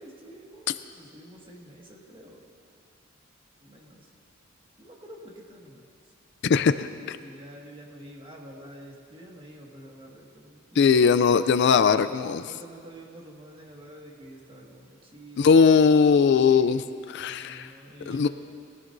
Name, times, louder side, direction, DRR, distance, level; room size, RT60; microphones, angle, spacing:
voice 1, 0.0-2.5 3.6-4.1 4.8-5.8 6.7-11.0 12.4-15.8 16.5-16.8 17.3-18.3, right 1 dB, 25° right, -2 dB, 1.8 m, -47 dB
voice 2, 6.5-6.9 10.8-12.4 15.4-16.8 17.1-17.7 18.1-18.3, left 5 dB, 60° left, 13 dB, 0.4 m, -19 dB
21.0 x 14.5 x 2.6 m, 2.3 s
head